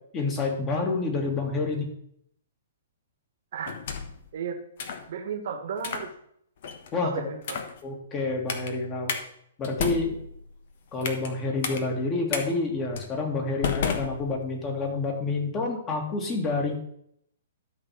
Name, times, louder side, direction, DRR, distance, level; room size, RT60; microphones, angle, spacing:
voice 1, 0.1-1.9 6.9-7.1 7.8-9.1 9.6-10.2 10.9-16.8, left 3 dB, 20° left, 1 dB, 2.2 m, -28 dB
sound 1, 3.6-4.2 4.8-5.1 5.8-6.1 6.6-6.9 7.4-7.8 8.5-8.7 9.1-9.2 9.6-11.3 11.6-11.8 12.3-12.4 13.0-13.1 13.6-14.7, left 6 dB, 50° left, 1.2 m, -32 dB
voice 2, 4.3-4.6 5.1-6.1 7.0-7.6, right 6 dB, 50° right, 6 dB, 1.5 m, -34 dB
12.0 x 4.2 x 6.3 m, 0.69 s
figure-of-eight pair, 115°, 0 cm